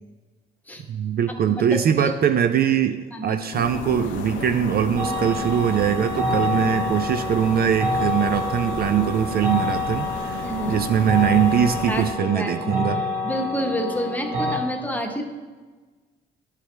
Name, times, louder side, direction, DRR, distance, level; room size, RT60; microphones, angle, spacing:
voice 1, 0.9-13.0, right 9 dB, 50° right, 8 dB, 0.4 m, -22 dB
voice 2, 1.5-2.1 3.1-3.4 10.4-10.8 11.9-15.2, equal, 10° left, 2 dB, 1.0 m, -29 dB
sound 1, 3.5-12.1, left 5 dB, 75° left, 0.7 m, -33 dB
sound 2, 5.0-14.6, left 2 dB, 90° right, 1.9 m, -28 dB
10.5 x 4.8 x 3.2 m, 1.4 s
cardioid pair, 90°, 20 cm